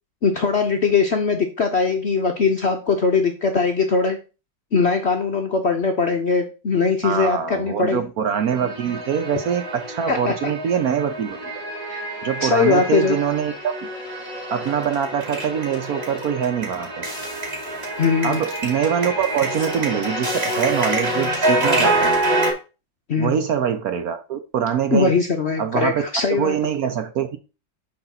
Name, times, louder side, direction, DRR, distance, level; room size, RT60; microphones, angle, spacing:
voice 1, 0.2-4.2 4.7-8.0 10.1-10.5 11.9-12.1 12.4-13.2 18.0-18.4 23.1-23.3 24.9-26.5, left 4 dB, 55° left, 0.7 m, -20 dB
voice 2, 7.0-11.5 12.2-13.9 14.5-17.1 18.2-22.2 23.2-25.1 25.6-26.0 26.3-27.4, right 8 dB, 65° right, 1.0 m, -24 dB
sound 1, 8.3-22.5, right 1 dB, 30° right, 2.7 m, -26 dB
9.6 x 4.1 x 4.1 m
omnidirectional pair, 2.0 m